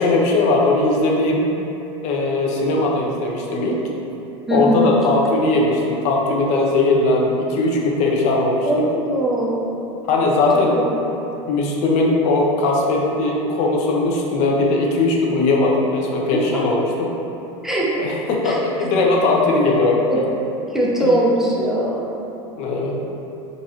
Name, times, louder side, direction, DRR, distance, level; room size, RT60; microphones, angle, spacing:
voice 1, 0.0-1.4 2.0-3.8 4.5-8.8 10.1-10.7 11.5-17.1 17.9-20.3 21.0-21.1 22.5-22.9, left 2 dB, 45° left, -1 dB, 0.6 m, -19 dB
voice 2, 4.5-4.8 8.6-9.7 16.3-16.7 17.6-17.9 18.4-18.9 20.1-20.2 20.7-22.0, right 1 dB, ahead, -6 dB, 0.4 m, -21 dB
3.9 x 2.4 x 2.6 m, 2.9 s
supercardioid pair, 130°, 16 cm